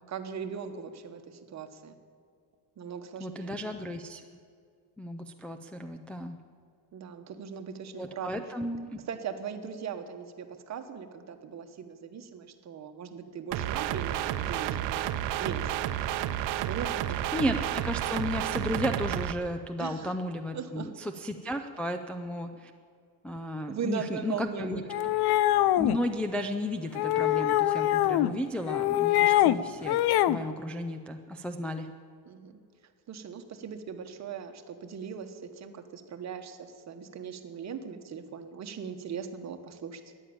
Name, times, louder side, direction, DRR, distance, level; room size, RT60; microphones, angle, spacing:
voice 1, 0.1-2.0 2.8-3.5 6.9-8.3 9.1-15.8 16.6-17.3 19.8-20.1 20.5-20.9 23.7-25.1 32.3-32.5 33.1-40.0, right 7 dB, 40° right, 6 dB, 1.3 m, -39 dB
voice 2, 3.2-4.2 5.0-6.4 8.0-9.0 17.3-22.7 23.2-24.8 25.8-30.0 30.3-31.9, equal, 5° left, 3 dB, 0.4 m, -34 dB
sound 1, 13.5-19.3, right 12 dB, 70° right, 0.8 m, -31 dB
sound 2, 24.9-26.0 27.0-28.3 28.7-29.6 29.9-30.4, left 14 dB, 60° left, 0.6 m, -24 dB
14.0 x 10.0 x 8.8 m, 2.2 s
cardioid pair, 150°, 44 cm